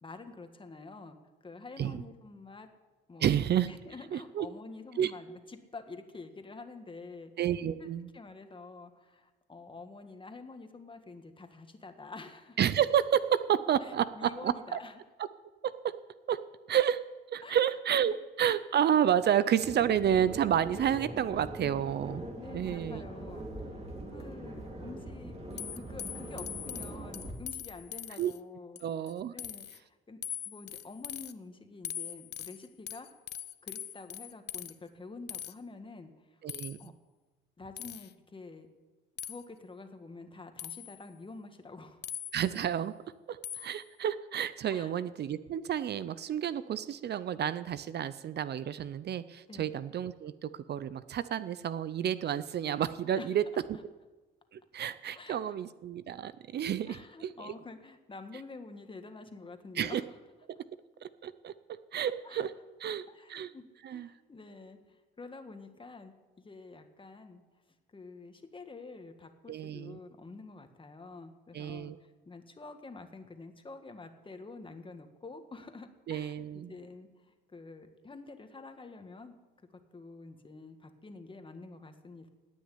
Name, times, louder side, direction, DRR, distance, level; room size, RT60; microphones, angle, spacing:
voice 1, 0.0-1.2 1.4-2.7 3.1-3.3 3.6-7.3 7.8-12.6 13.8-14.9 17.4-17.6 18.1-18.2 22.4-28.8 29.3-33.1 33.6-36.1 36.8-36.9 37.6-38.7 39.2-42.0 44.7-44.9 49.5-49.7 53.2-53.3 55.1-55.4 56.9-60.0 62.2-62.5 63.1-63.6 63.9-67.4 67.9-71.9 72.2-79.4 79.9-82.3, left 3 dB, 25° left, 7 dB, 1.7 m, -48 dB
voice 2, 3.2-3.7 4.1-4.5 5.0-5.1 7.4-8.1 12.6-14.8 15.6-16.0 16.3-17.0 17.3-22.2 22.5-23.0 28.2-28.3 28.8-29.3 36.4-36.9 42.3-42.9 43.3-53.4 54.5-57.5 59.8-60.0 60.5-60.6 61.0-62.5 62.8-63.5 63.8-64.1 69.5-70.0 71.5-72.0 76.1-76.7, right 9 dB, 55° right, 15 dB, 0.6 m, -30 dB
sound 1, 19.6-27.3, right 1 dB, 30° right, 3.1 m, -42 dB
sound 2, 25.6-28.4 28.7-29.1 29.4-29.8 30.2-31.3 31.8-34.7 35.3-35.5 36.5-36.9 37.8-38.1 39.2-39.4 40.6-41.0 42.0-42.6 43.4-43.8, left 10 dB, 55° left, 0.7 m, -41 dB
17.5 x 6.3 x 9.9 m, 1.2 s
cardioid pair, 90°, 20 cm